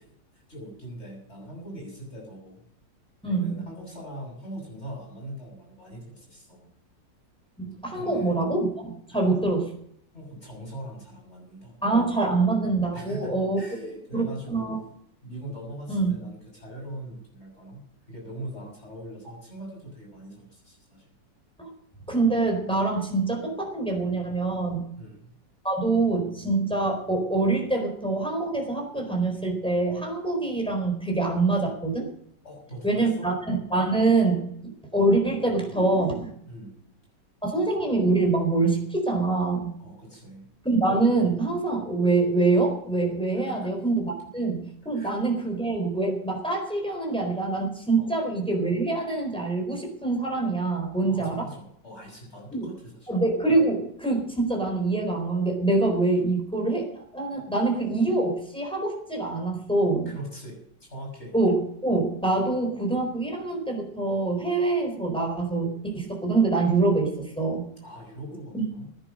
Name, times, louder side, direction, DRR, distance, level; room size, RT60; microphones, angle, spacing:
voice 1, 0.3-2.6 3.2-6.7 7.9-8.3 9.1-9.5 10.1-11.8 12.9-14.8 15.2-21.1 25.0-25.3 32.4-33.3 36.5-36.8 39.8-40.5 43.5-43.7 44.9-45.1 48.0-48.1 51.1-53.1 60.0-60.6 60.9-61.3 67.8-68.9, right 1 dB, 35° left, 0 dB, 6.9 m, -41 dB
voice 2, 3.2-3.6 7.6-9.6 11.8-13.6 14.1-14.8 15.9-16.1 21.6-21.7 22.1-24.9 25.6-32.1 32.8-36.3 37.4-39.7 40.6-51.5 52.5-52.7 53.1-60.1 61.3-67.7 68.5-68.7, right 3 dB, 5° left, 1 dB, 4.2 m, -25 dB
16.5 x 10.0 x 6.6 m, 0.70 s
omnidirectional pair, 1.9 m